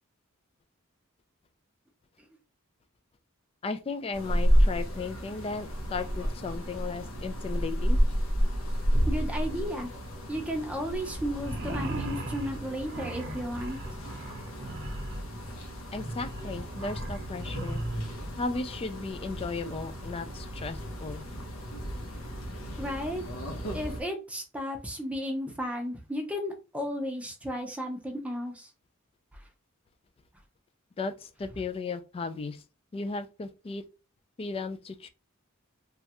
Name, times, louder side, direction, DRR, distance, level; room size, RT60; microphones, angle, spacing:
voice 1, 3.6-8.0 15.9-17.8 18.4-21.3 31.0-32.6 32.9-33.8 34.4-35.1, left 3 dB, 25° left, 0.3 m, -35 dB
sound 1, 4.1-24.0, equal, 85° left, 0.8 m, -31 dB
voice 2, 9.0-9.9 10.3-13.8 22.8-23.2 23.7-28.7 29.3-29.4, equal, 5° right, 0.6 m, -34 dB
sound 2, 11.4-18.2, right 2 dB, 55° right, 0.6 m, -38 dB
3.1 x 2.4 x 2.8 m
head